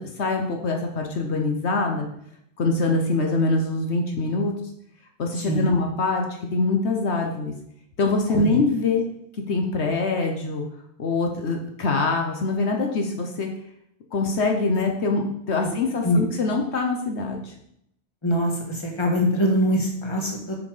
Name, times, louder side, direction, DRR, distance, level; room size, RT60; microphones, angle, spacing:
voice 1, 0.0-2.1 2.6-4.5 5.2-6.2 6.5-7.5 8.0-9.0 9.5-10.6 11.0-13.5 14.1-17.5, left 3 dB, 75° left, 2 dB, 1.3 m, -24 dB
voice 2, 18.2-20.6, equal, 25° left, 1 dB, 1.7 m, -23 dB
7.3 x 6.4 x 5.0 m, 0.73 s
omnidirectional pair, 1.2 m